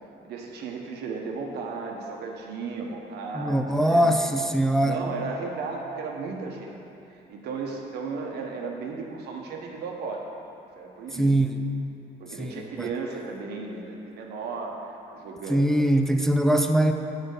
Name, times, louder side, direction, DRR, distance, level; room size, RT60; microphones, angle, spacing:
voice 1, 0.0-4.1 4.8-6.8 7.1-10.2 10.7-11.3 12.2-15.7, right 4 dB, 75° right, 1 dB, 1.1 m, -35 dB
voice 2, 3.3-5.0 11.1-11.6 12.4-12.9 15.5-16.9, right 1 dB, 5° left, 4 dB, 0.4 m, -22 dB
6.7 x 4.4 x 6.5 m, 2.8 s
cardioid pair, 110°, 17 cm